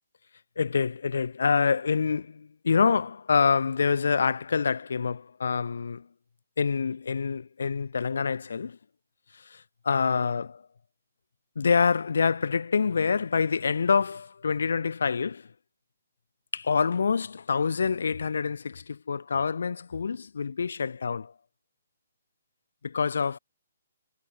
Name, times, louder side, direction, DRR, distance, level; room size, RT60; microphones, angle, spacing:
voice 1, 0.6-6.0 6.6-8.8 9.3-10.6 11.6-15.5 16.5-21.3 22.8-23.4, left 5 dB, 75° left, 0.8 m, -26 dB
hypercardioid pair, 150°, 0 cm